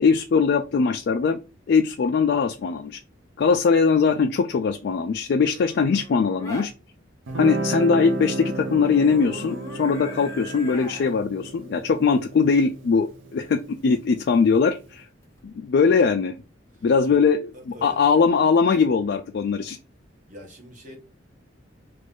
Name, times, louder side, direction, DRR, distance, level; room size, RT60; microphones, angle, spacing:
voice 1, 0.0-1.4 1.7-3.0 3.4-6.7 7.3-15.1 15.4-16.4 16.8-19.8, left 5 dB, 55° left, 0.3 m, -21 dB
sound 1, 5.4-6.7 8.7-11.2 15.2-15.5, equal, 15° left, 0.8 m, -40 dB
Guitar, 7.3-14.4, right 2 dB, 70° right, 0.6 m, -33 dB
voice 2, 16.7-17.2 17.5-18.1 20.3-21.0, equal, 40° right, 1.2 m, -44 dB
3.0 x 2.5 x 3.5 m
head